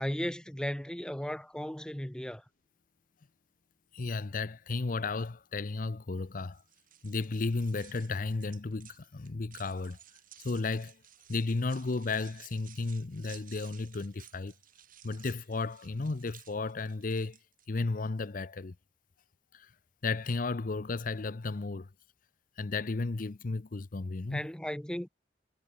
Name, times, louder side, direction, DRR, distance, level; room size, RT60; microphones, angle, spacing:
voice 1, 0.0-2.4 24.3-25.1, equal, 5° left, 0.7 m, -35 dB
voice 2, 3.9-6.6 7.0-10.0 10.4-11.0 11.3-14.5 15.0-17.4 17.7-18.7 19.5-19.7 20.0-21.9 22.6-24.5, left 3 dB, 50° left, 0.7 m, -33 dB
sound 1, 6.5-17.7, right 11 dB, 50° right, 6.4 m, -56 dB
head